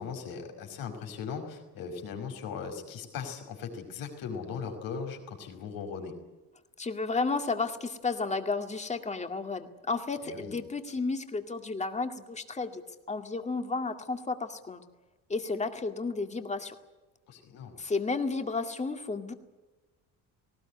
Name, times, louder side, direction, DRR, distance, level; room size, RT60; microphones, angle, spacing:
voice 1, 0.0-6.1 10.2-10.6 17.3-17.8, left 6 dB, 75° left, 4 dB, 5.4 m, -38 dB
voice 2, 6.8-12.8 13.1-14.8 15.3-16.7 17.8-19.3, left 3 dB, 20° left, 7 dB, 2.1 m, -32 dB
19.0 x 18.5 x 9.8 m, 1.2 s
cardioid pair, 130°, 35 cm